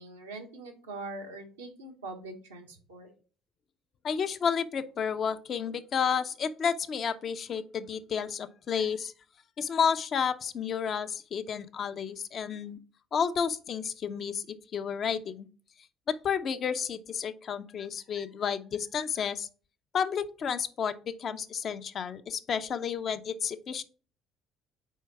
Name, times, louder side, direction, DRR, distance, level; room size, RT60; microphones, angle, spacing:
voice 1, 0.0-3.1, right 2 dB, 90° right, 2 dB, 1.2 m, -42 dB
voice 2, 4.0-9.1 9.6-12.8 13.1-14.4 14.7-15.5 16.1-19.5 19.9-23.8, left 7 dB, 50° left, 10 dB, 0.6 m, -31 dB
4.6 x 4.5 x 5.7 m, 0.40 s
hypercardioid pair, 55°, 0 cm